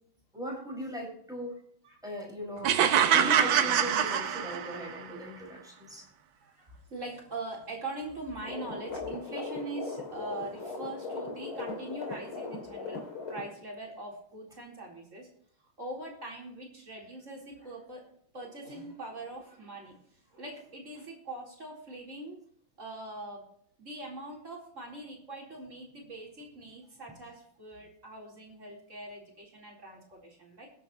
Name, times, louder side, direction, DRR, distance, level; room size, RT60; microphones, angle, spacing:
voice 1, 0.3-1.5 2.0-2.7 3.1-6.0, equal, ahead, -2 dB, 5.9 m, -38 dB
sound 1, 2.6-5.0, right 9 dB, 75° right, 1.7 m, -24 dB
voice 2, 6.4-13.0 13.3-15.3 15.8-22.4 22.8-23.4 23.8-30.7, right 2 dB, 35° right, -3 dB, 4.5 m, -42 dB
sound 2, 8.4-13.5, left 3 dB, 90° left, 3.9 m, -38 dB
21.0 x 8.5 x 3.1 m, 0.63 s
omnidirectional pair, 2.2 m